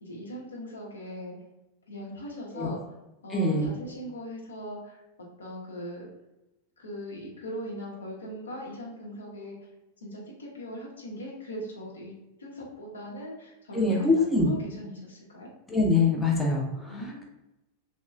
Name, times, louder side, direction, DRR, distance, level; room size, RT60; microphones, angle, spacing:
voice 1, 0.0-1.3 1.9-2.8 3.2-6.1 6.8-9.6 10.0-15.5 16.9-17.2, equal, 70° left, -3 dB, 0.7 m, -40 dB
voice 2, 3.3-3.7 13.7-14.5 15.7-16.9, left 3 dB, 10° left, -2 dB, 0.5 m, -24 dB
2.9 x 2.1 x 2.4 m, 0.95 s
figure-of-eight pair, 90°, 0 cm